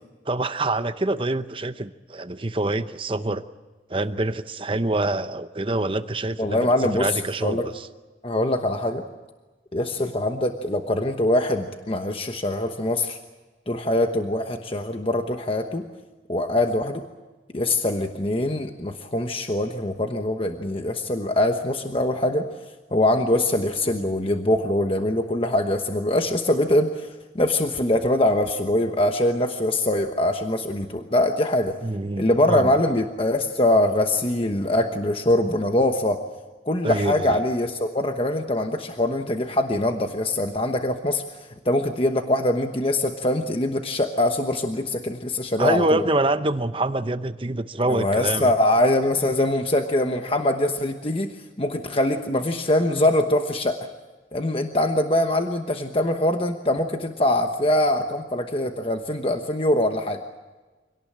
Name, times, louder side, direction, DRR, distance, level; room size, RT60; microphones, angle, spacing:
voice 1, 0.3-3.4 3.9-6.7 7.0-7.7 31.8-32.7 36.8-37.4 45.6-48.5, right 2 dB, 30° right, 11 dB, 0.8 m, -25 dB
voice 2, 6.4-7.7 8.2-9.0 9.7-13.2 13.7-15.8 16.3-17.0 17.5-22.5 22.9-27.1 27.3-31.7 32.2-36.2 36.6-46.0 47.9-53.8 54.3-60.2, left 1 dB, 30° left, 5 dB, 1.1 m, -23 dB
25.5 x 18.5 x 8.8 m, 1.2 s
head